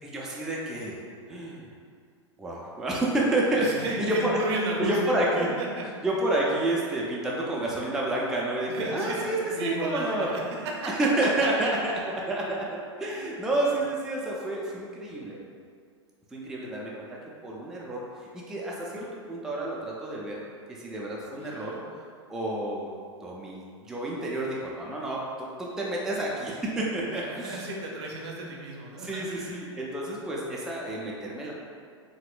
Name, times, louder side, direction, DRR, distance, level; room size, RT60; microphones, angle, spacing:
voice 1, 0.0-1.0 1.3-1.7 2.4-3.7 4.0-4.4 4.8-5.5 6.0-10.3 10.9-11.9 12.3-15.4 16.3-18.0 18.3-20.4 20.8-21.8 22.3-22.9 23.2-25.2 25.6-27.6 28.9-31.5, right 1 dB, 5° right, -4 dB, 0.3 m, -29 dB
voice 2, 3.5-5.8 8.7-10.4 10.7-10.9 11.4-11.7 13.0-13.3 21.4-21.8 27.2-29.6, right 2 dB, 60° right, -2 dB, 0.6 m, -34 dB
4.0 x 2.1 x 2.4 m, 2.1 s
figure-of-eight pair, 95°, 16 cm